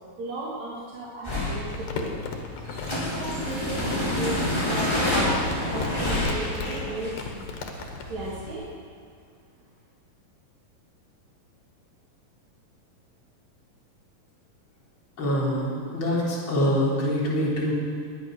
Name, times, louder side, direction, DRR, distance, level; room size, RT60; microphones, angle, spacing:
voice 1, 0.2-2.1 2.9-5.4 5.7-7.2 8.1-8.6, right 1 dB, 55° right, -5 dB, 2.9 m, -35 dB
sound 1, 1.2-8.5, left 1 dB, 5° left, 4.0 m, -28 dB
Crumpling crinkling, 1.3-8.1, left 5 dB, 90° left, 3.3 m, -37 dB
voice 2, 15.2-17.7, equal, 35° left, -7 dB, 4.2 m, -25 dB
21.0 x 9.5 x 6.2 m, 2.2 s
omnidirectional pair, 4.1 m